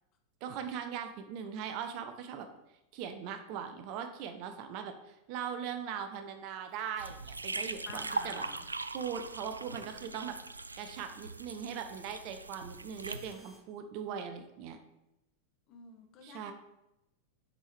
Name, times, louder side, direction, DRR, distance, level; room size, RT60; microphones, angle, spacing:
voice 1, 0.4-2.5 2.9-10.4 10.8-14.8 16.2-16.5, right 7 dB, 45° right, 7 dB, 0.7 m, -40 dB
sound 1, 6.7-7.0 7.7-8.0 8.7-9.0 9.7-10.0 10.7-11.0 11.7-12.0 12.7-13.6, left 1 dB, ahead, 2.6 m, -64 dB
sound 2, 7.0-13.3, right 3 dB, 80° right, 0.3 m, -41 dB
voice 2, 7.9-8.6 15.7-16.5, left 6 dB, 40° left, 4 dB, 1.1 m, -49 dB
7.6 x 5.4 x 3.1 m, 0.90 s
figure-of-eight pair, 90°, 0 cm